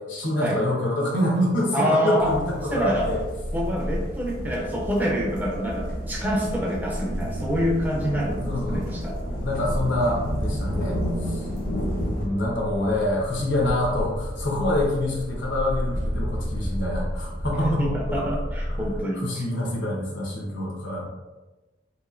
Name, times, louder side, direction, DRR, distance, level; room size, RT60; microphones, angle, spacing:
voice 1, 0.0-3.2 8.4-8.9 9.4-11.5 12.1-18.3 18.7-21.1, left 1 dB, 70° left, -2 dB, 0.8 m, -26 dB
voice 2, 1.7-2.3 2.7-3.1 3.5-8.4 8.7-9.2 17.6-19.4, equal, 10° right, -2 dB, 0.4 m, -26 dB
sound 1, 2.2-12.3, equal, 45° left, 0.6 m, -32 dB
sound 2, 2.2-19.0, equal, 60° right, 0.7 m, -33 dB
2.9 x 2.6 x 2.4 m, 1.1 s
head